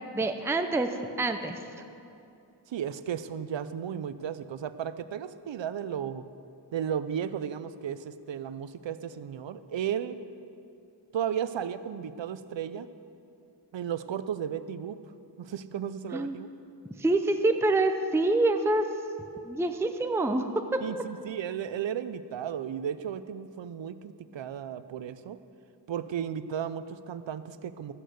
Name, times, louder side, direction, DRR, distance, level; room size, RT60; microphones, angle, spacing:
voice 1, 0.1-1.6 16.1-16.3 17.0-18.9 19.4-20.8, right 2 dB, 5° right, 6 dB, 0.5 m, -26 dB
voice 2, 2.7-6.3 6.7-10.2 11.1-12.9 13.7-15.0 15.4-16.5 20.8-25.4 25.9-27.9, right 8 dB, 85° right, 13 dB, 0.6 m, -34 dB
13.5 x 6.5 x 8.0 m, 2.6 s
wide cardioid pair, 105°, 43 cm